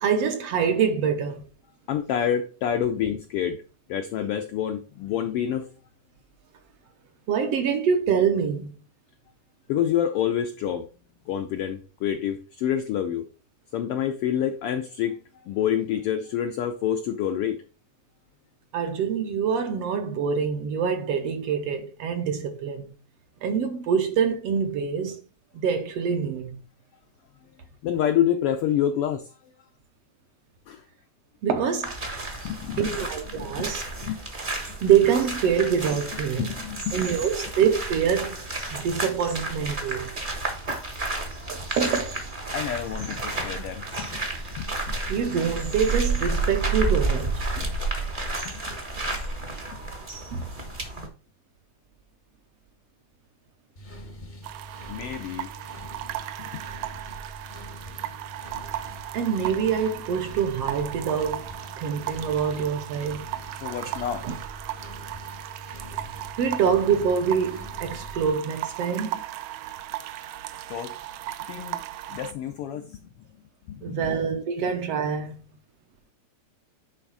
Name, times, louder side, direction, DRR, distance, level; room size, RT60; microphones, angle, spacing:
voice 1, 0.0-1.5 7.3-8.7 18.7-22.9 23.4-25.2 25.5-26.6 31.4-31.9 32.8-33.8 34.8-36.5 36.9-38.4 38.7-40.1 41.5-42.2 45.1-47.7 50.3-50.5 59.1-61.5 61.8-63.3 63.8-63.9 64.2-64.4 66.4-69.2 73.8-75.4, right 7 dB, 70° right, 1.7 m, -25 dB
voice 2, 1.9-3.6 3.9-5.7 9.7-10.9 11.3-13.2 13.7-15.2 15.4-17.6 27.8-29.2 30.7-30.8 32.4-33.0 33.3-33.7 34.0-34.3 36.4-37.0 42.5-44.2 44.5-45.0 48.4-48.8 49.7-49.8 54.9-55.5 56.4-56.6 63.6-64.3 70.7-71.0 71.4-71.8 72.1-73.0 73.7-74.2, left 9 dB, 80° left, 1.3 m, -28 dB
sound 1, 31.8-51.1, right 3 dB, 35° right, 0.8 m, -31 dB
sound 2, 53.8-68.3, equal, 45° left, 0.5 m, -43 dB
sound 3, 54.4-72.3, right 14 dB, 85° right, 1.3 m, -37 dB
9.7 x 3.5 x 4.7 m
omnidirectional pair, 3.3 m